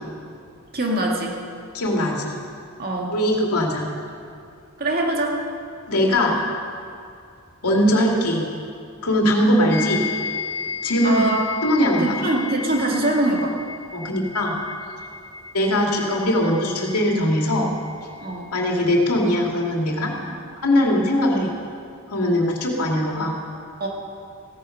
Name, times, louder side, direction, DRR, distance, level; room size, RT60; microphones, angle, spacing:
voice 1, 0.7-1.4 2.8-3.2 4.8-5.4 11.0-11.4 12.0-13.6 18.2-18.5 20.2-20.4 23.8-23.9, right 1 dB, 45° right, -1 dB, 2.1 m, -23 dB
voice 2, 1.7-2.4 3.1-3.9 5.9-6.4 7.6-8.5 9.0-10.1 10.8-11.2 11.6-12.1 13.9-14.6 15.5-17.7 18.5-20.1 20.6-21.5 22.1-23.3, left 1 dB, 85° left, -1 dB, 2.4 m, -20 dB
sound 1, 9.7-18.4, left 6 dB, 50° left, 1.7 m, -34 dB
16.0 x 10.0 x 6.5 m, 2.4 s
head